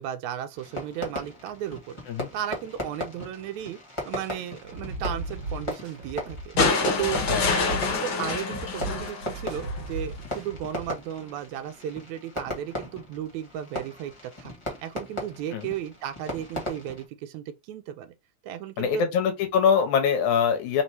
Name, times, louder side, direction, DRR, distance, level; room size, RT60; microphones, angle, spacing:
voice 1, 0.0-2.0 2.3-3.8 4.1-6.5 7.0-14.1 14.4-14.5 14.8-18.1 18.4-19.0, right 10 dB, 80° right, 1.9 m, -35 dB
Fireworks, 0.5-17.0, left 1 dB, 15° left, 1.1 m, -38 dB
sound 1, 4.6-10.9, right 2 dB, 55° right, 2.5 m, -36 dB
sound 2, 6.6-9.9 11.2-11.3, left 4 dB, 55° left, 1.5 m, -26 dB
voice 2, 18.8-20.8, left 7 dB, 80° left, 2.5 m, -23 dB
5.2 x 3.1 x 2.7 m
omnidirectional pair, 3.4 m